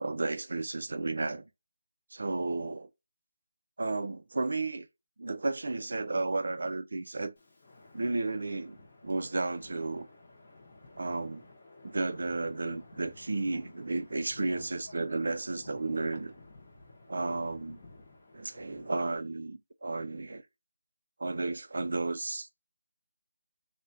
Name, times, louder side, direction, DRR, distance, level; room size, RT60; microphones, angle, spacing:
voice 1, 0.0-1.4 2.1-2.9 3.8-4.9 5.2-7.3 7.9-8.8 9.0-10.1 11.0-11.4 11.8-16.3 17.1-17.8 18.3-20.4 21.2-22.5, right 3 dB, 60° right, 0.3 m, -33 dB
Wind, 7.4-19.2, left 2 dB, 30° left, 0.7 m, -54 dB
3.4 x 2.1 x 2.5 m
figure-of-eight pair, 175°, 0 cm